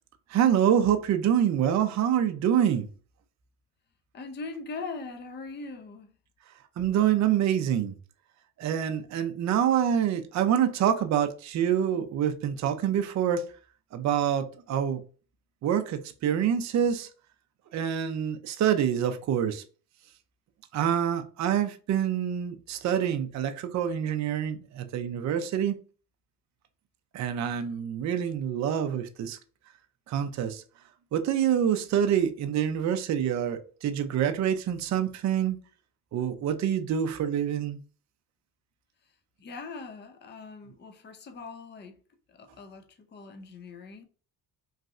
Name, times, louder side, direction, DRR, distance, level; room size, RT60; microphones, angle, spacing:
voice 1, 0.3-2.9 6.8-7.9 8.6-13.4 13.9-15.0 15.6-17.1 17.7-19.6 20.7-25.7 27.1-29.4 30.1-30.6 31.1-35.6 36.1-37.8, right 9 dB, 40° right, 0.5 m, -26 dB
voice 2, 4.1-6.1 39.4-42.0 42.3-44.1, left 4 dB, 25° left, 0.5 m, -41 dB
3.1 x 2.5 x 2.4 m
supercardioid pair, 80°, 43 cm